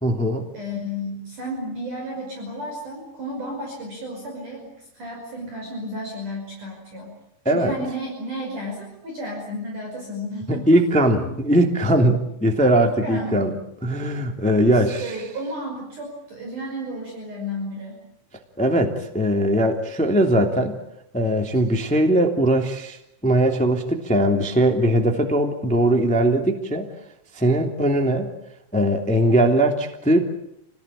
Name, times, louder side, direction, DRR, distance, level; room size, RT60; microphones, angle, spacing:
voice 1, 0.0-0.4 7.4-7.7 10.5-13.6 13.8-15.1 18.6-20.8 21.1-23.0 23.2-26.9 27.3-28.3 28.7-30.2, right 1 dB, 5° left, 4 dB, 1.4 m, -20 dB
voice 2, 0.5-7.1 7.5-11.3 13.0-13.5 14.7-18.0, equal, 40° right, 0 dB, 6.8 m, -33 dB
29.5 x 19.5 x 8.9 m, 0.79 s
omnidirectional pair, 5.6 m